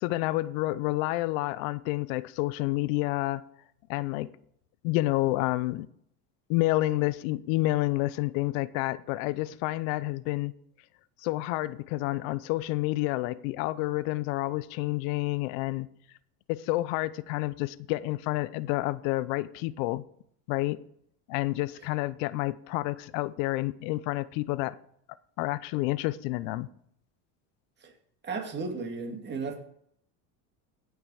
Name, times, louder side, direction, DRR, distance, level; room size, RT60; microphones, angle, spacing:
voice 1, 0.0-3.4 3.9-4.3 4.8-5.9 6.5-10.5 11.2-15.9 16.5-20.0 20.5-20.8 21.3-24.8 25.4-26.7, left 18 dB, 70° left, 0.7 m, -29 dB
voice 2, 28.2-29.6, right 4 dB, 25° right, 2.4 m, -34 dB
16.5 x 5.8 x 4.8 m
supercardioid pair, 110°, 42 cm